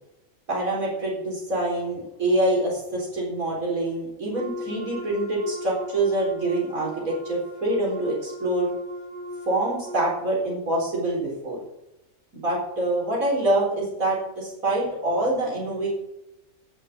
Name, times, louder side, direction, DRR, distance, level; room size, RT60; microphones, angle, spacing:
voice 1, 0.5-8.7 9.5-11.6 12.3-15.9, right 1 dB, 85° right, -3 dB, 4.6 m, -25 dB
Wind instrument woodwind instrument, 4.3-10.1, right 1 dB, 45° right, 6.3 m, -38 dB
17.0 x 6.2 x 6.0 m, 0.90 s
omnidirectional pair, 1.4 m